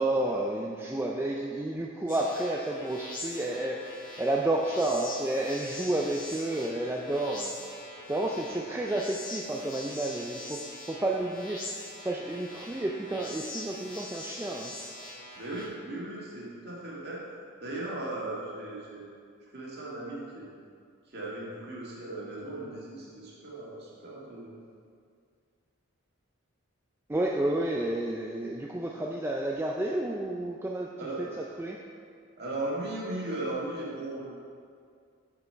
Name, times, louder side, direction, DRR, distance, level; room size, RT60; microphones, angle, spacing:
voice 1, 0.0-3.8 4.2-7.6 8.1-10.6 10.9-14.7 27.1-30.9 31.2-31.8, right 1 dB, 10° right, -1 dB, 0.3 m, -31 dB
sound 1, 2.1-15.7, left 1 dB, 40° left, 1.8 m, -43 dB
voice 2, 15.4-17.2 17.6-19.0 19.5-20.5 21.1-24.5 31.0-31.3 32.4-34.4, right 2 dB, 50° right, -6 dB, 1.9 m, -37 dB
6.9 x 6.8 x 4.4 m, 2.2 s
head